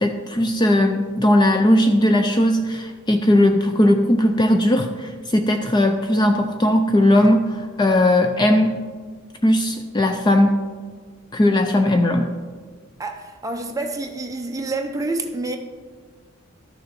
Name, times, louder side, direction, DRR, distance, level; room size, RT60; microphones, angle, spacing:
voice 1, 0.0-8.8 9.4-10.6 11.3-12.3, left 1 dB, 20° left, 0.4 m, -18 dB
voice 2, 13.0-15.6, right 2 dB, 15° right, 0.7 m, -28 dB
13.0 x 6.5 x 4.4 m
head